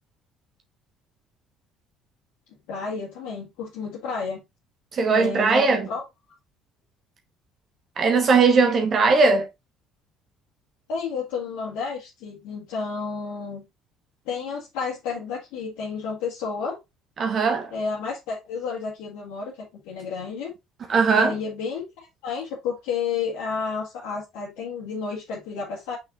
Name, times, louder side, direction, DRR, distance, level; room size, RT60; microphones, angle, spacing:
voice 1, 2.7-4.4 5.1-6.0 10.9-13.6 14.3-16.8 17.7-20.5 21.1-26.0, left 5 dB, 60° left, 1.9 m, -31 dB
voice 2, 4.9-5.8 8.0-9.5 17.2-17.7 20.9-21.3, right 4 dB, 40° right, 1.1 m, -19 dB
6.1 x 5.8 x 2.6 m
figure-of-eight pair, 55°, 0 cm